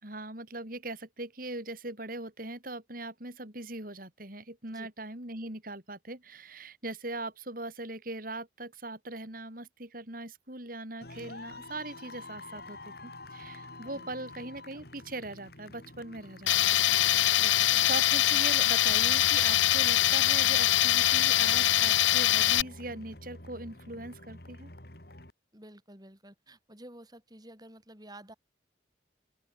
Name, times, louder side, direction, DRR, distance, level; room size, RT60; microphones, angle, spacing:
voice 1, 0.0-16.8 17.9-24.7, right 2 dB, 50° right, 5.1 m, -40 dB
sound 1, 11.0-25.3, left 2 dB, 55° left, 4.9 m, -48 dB
Tools, 16.5-22.6, left 14 dB, 85° left, 0.5 m, -23 dB
voice 2, 17.4-17.9 25.5-28.3, right 1 dB, 20° right, 7.0 m, -51 dB
open air
head